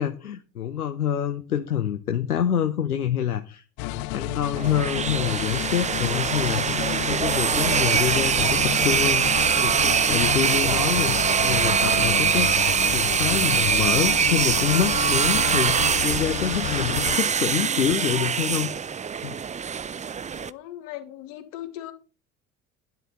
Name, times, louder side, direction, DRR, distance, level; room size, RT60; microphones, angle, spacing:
voice 1, 0.0-11.2 11.4-18.7 19.1-19.5, left 9 dB, 85° left, 0.9 m, -27 dB
sound 1, 3.8-17.2, left 21 dB, 45° left, 0.5 m, -31 dB
sound 2, 4.6-20.5, right 7 dB, 15° right, 0.6 m, -23 dB
Water, 7.5-12.8, right 9 dB, 70° right, 2.5 m, -41 dB
voice 2, 20.3-21.9, left 13 dB, 65° left, 2.7 m, -38 dB
12.5 x 10.5 x 4.4 m
figure-of-eight pair, 65°, 43 cm